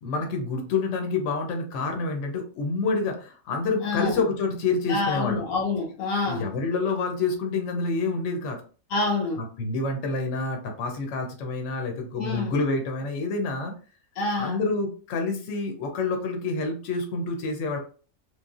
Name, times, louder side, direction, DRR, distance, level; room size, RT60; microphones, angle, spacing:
voice 1, 0.0-5.4 6.2-8.6 9.6-13.7 14.3-17.8, left 3 dB, 65° left, 0.9 m, -28 dB
voice 2, 3.8-4.2 4.9-6.5 8.9-9.4 12.1-12.5 14.2-14.6, left 3 dB, 85° left, 1.2 m, -27 dB
3.1 x 2.3 x 2.3 m
omnidirectional pair, 1.4 m